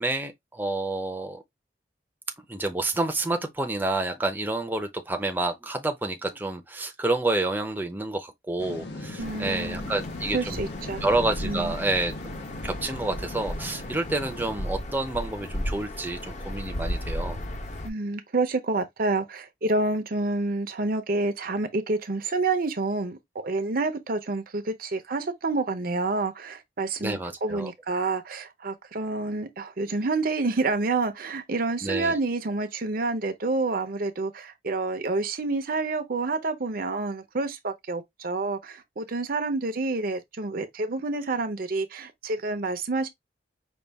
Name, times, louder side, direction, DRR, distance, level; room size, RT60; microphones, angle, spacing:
voice 1, 0.0-1.4 2.5-10.6 11.0-12.1 12.6-17.4 27.0-27.7 31.8-32.2, right 2 dB, 10° right, 0.6 m, -29 dB
sound 1, 8.6-14.5, left 2 dB, 75° left, 1.0 m, -39 dB
sound 2, 9.2-17.9, left 1 dB, 40° left, 0.8 m, -35 dB
voice 2, 9.2-9.9 10.3-11.0 11.4-11.7 17.8-43.1, right 3 dB, 55° right, 0.7 m, -28 dB
5.3 x 2.4 x 3.4 m
head